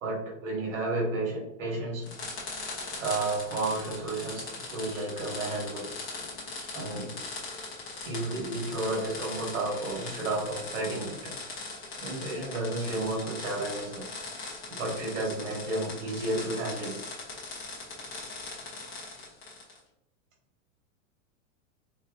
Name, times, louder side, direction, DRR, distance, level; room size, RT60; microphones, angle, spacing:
voice 1, 0.0-2.1 3.0-5.9 6.7-7.2 8.0-11.3 12.0-14.1 14.7-17.0, right 2 dB, 80° right, -2 dB, 1.5 m, -32 dB
sound 1, 2.0-19.8, left 3 dB, 10° left, 0.3 m, -40 dB
4.3 x 2.6 x 2.3 m, 0.86 s
supercardioid pair, 160°, 39 cm